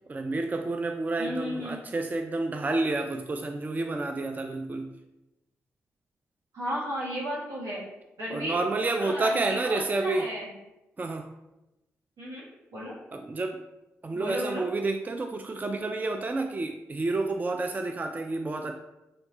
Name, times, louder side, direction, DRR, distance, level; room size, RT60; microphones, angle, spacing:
voice 1, 0.1-4.9 8.3-10.3 11.0-11.3 13.1-13.6 14.0-18.8, right 2 dB, 30° right, 5 dB, 0.3 m, -29 dB
voice 2, 1.2-1.8 6.5-7.8 8.2-8.6 9.0-10.5 12.2-12.9 14.1-14.6, equal, 75° right, -6 dB, 1.5 m, -34 dB
4.0 x 3.1 x 3.0 m, 0.96 s
hypercardioid pair, 40°, 6 cm